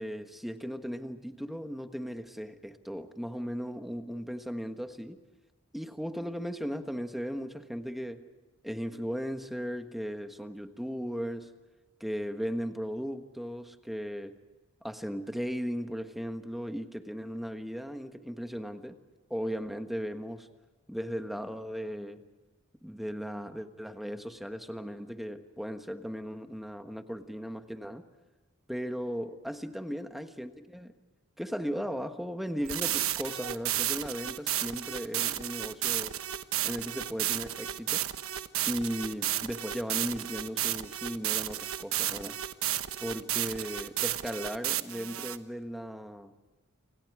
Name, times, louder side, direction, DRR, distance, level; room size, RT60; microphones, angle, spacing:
voice 1, 0.0-5.2 5.7-8.2 8.6-11.5 12.0-14.4 14.8-19.0 19.3-20.5 20.9-22.2 22.8-28.0 28.7-31.0 31.4-36.1 36.6-38.1 38.7-42.4 43.0-46.3, equal, ahead, 1.4 m, -37 dB
sound 1, 32.6-45.4, right 12 dB, 80° right, 1.2 m, -32 dB
29.5 x 27.0 x 4.9 m
head